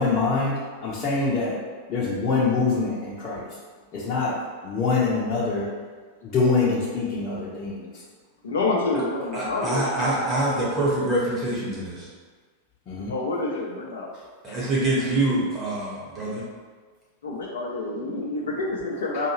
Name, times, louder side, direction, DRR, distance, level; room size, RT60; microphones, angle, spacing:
voice 1, 0.0-1.6 1.9-3.5 3.9-5.7 6.2-8.0 12.9-13.1 14.5-14.7, left 4 dB, 35° left, -8 dB, 0.8 m, -25 dB
voice 2, 8.4-9.9 13.1-14.1 17.2-19.3, left 3 dB, 65° left, -2 dB, 0.5 m, -27 dB
voice 3, 9.3-12.1 14.4-16.4, right 1 dB, 25° right, -6 dB, 1.4 m, -25 dB
4.7 x 2.6 x 3.1 m, 1.5 s
figure-of-eight pair, 90°, 0 cm